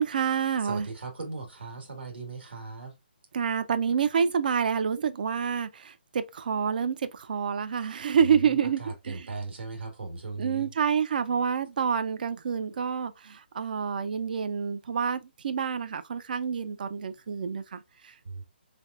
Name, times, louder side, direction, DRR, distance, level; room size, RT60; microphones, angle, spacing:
voice 1, 0.0-0.9 3.3-9.3 10.4-18.1, right 7 dB, 55° right, 0.4 m, -28 dB
voice 2, 0.6-2.9 8.4-10.7 18.2-18.4, right 3 dB, 80° right, 1.6 m, -38 dB
3.4 x 3.2 x 2.4 m
hypercardioid pair, 160°, 6 cm